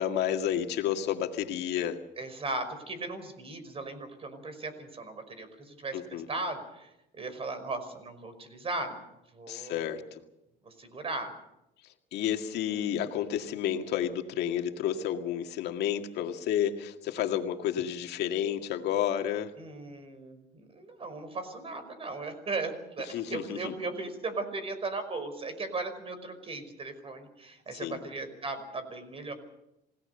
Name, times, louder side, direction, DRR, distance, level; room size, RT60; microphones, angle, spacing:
voice 1, 0.0-2.0 5.9-6.3 9.5-10.0 12.1-19.5 23.1-23.7 27.8-28.0, left 10 dB, 80° left, 5 dB, 2.1 m, -31 dB
voice 2, 2.2-9.0 9.3-9.8 10.6-11.3 19.6-29.3, right 3 dB, 35° right, 10 dB, 5.3 m, -37 dB
28.0 x 18.0 x 6.8 m, 0.87 s
cardioid pair, 110°, 17 cm